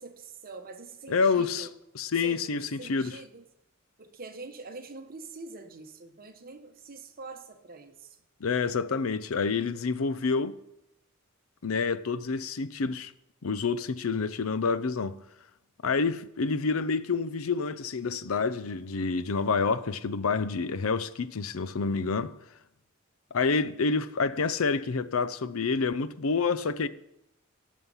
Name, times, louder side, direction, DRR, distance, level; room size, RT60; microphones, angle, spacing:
voice 1, 0.0-1.7 2.1-3.4 4.0-8.2, right 3 dB, 45° right, 1.2 m, -45 dB
voice 2, 1.1-1.7 2.0-3.2 8.4-10.5 11.6-13.1 13.4-15.2 15.8-22.3 23.3-26.9, left 4 dB, 80° left, 0.6 m, -28 dB
17.0 x 6.4 x 5.6 m
head